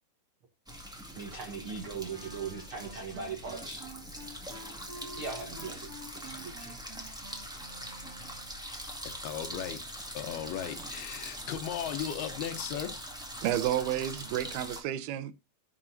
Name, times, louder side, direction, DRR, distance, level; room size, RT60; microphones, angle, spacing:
sound 1, 0.7-14.8, equal, 5° right, 0.7 m, -42 dB
voice 1, 1.2-3.8 5.2-5.9 6.2-6.8, right 5 dB, 70° right, 1.2 m, -39 dB
Wind instrument woodwind instrument, 2.0-8.7, right 2 dB, 45° right, 1.1 m, -49 dB
voice 2, 9.0-9.8 10.1-12.9, left 10 dB, 80° left, 3.0 m, -36 dB
voice 3, 13.4-15.3, right 12 dB, 85° right, 2.8 m, -31 dB
17.0 x 6.2 x 2.7 m
omnidirectional pair, 4.4 m